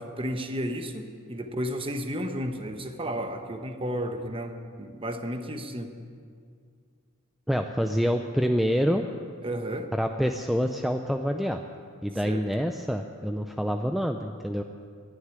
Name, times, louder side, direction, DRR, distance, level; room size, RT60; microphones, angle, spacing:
voice 1, 0.0-5.9 9.4-9.9 12.2-12.4, equal, 25° right, 6 dB, 1.1 m, -33 dB
voice 2, 7.5-9.0 9.9-11.6 12.0-14.6, equal, ahead, 4 dB, 0.5 m, -27 dB
13.0 x 11.0 x 9.7 m, 2.2 s
head